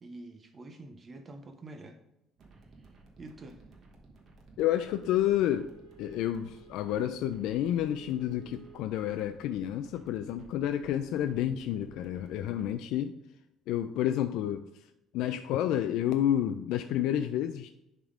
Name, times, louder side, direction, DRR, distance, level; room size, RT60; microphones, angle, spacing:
voice 1, 0.0-2.0 2.5-3.7, right 2 dB, 25° right, 7 dB, 0.5 m, -48 dB
sound 1, 2.4-12.7, right 2 dB, 40° right, 1.2 m, -56 dB
voice 2, 4.6-5.7 6.0-13.2 13.7-14.7 15.1-17.7, left 11 dB, 70° left, 8 dB, 0.3 m, -30 dB
Wind instrument woodwind instrument, 4.9-9.4, right 9 dB, 75° right, 1.5 m, -55 dB
10.5 x 3.6 x 3.7 m, 0.89 s
cardioid pair, 160°, 0 cm